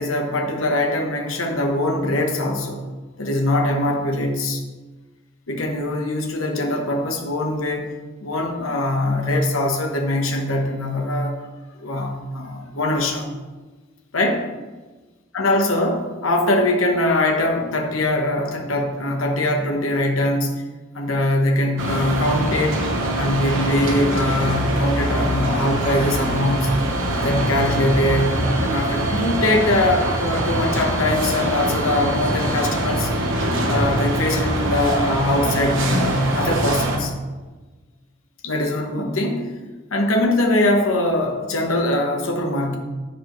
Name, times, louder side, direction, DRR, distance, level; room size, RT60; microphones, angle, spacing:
voice 1, 0.0-2.8 3.2-4.6 5.5-7.9 8.2-11.4 11.7-13.3 14.1-14.5 15.3-20.5 20.9-22.8 23.1-26.7 27.1-33.1 33.6-37.1 38.4-39.5 39.9-42.8, left 1 dB, 90° left, 3 dB, 1.1 m, -22 dB
sound 1, 21.8-37.0, right 1 dB, 75° right, 1.2 m, -23 dB
13.5 x 4.7 x 3.1 m, 1.3 s
head